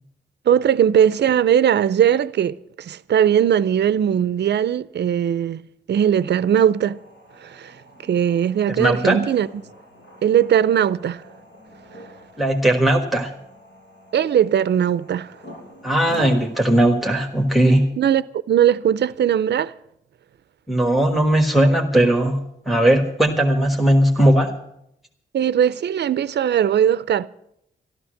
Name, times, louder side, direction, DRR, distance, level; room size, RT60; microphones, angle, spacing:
voice 1, 0.5-7.0 7.4-7.7 8.0-9.5 10.2-11.2 14.1-15.3 18.0-19.7 25.3-27.3, right 9 dB, 70° right, 0.5 m, -19 dB
sound 1, 6.1-17.8, equal, 75° left, 7.8 m, -44 dB
voice 2, 8.8-9.2 12.4-13.3 15.8-17.9 20.7-24.5, right 1 dB, ahead, 1.5 m, -18 dB
13.0 x 12.5 x 6.5 m
cardioid pair, 70°, 18 cm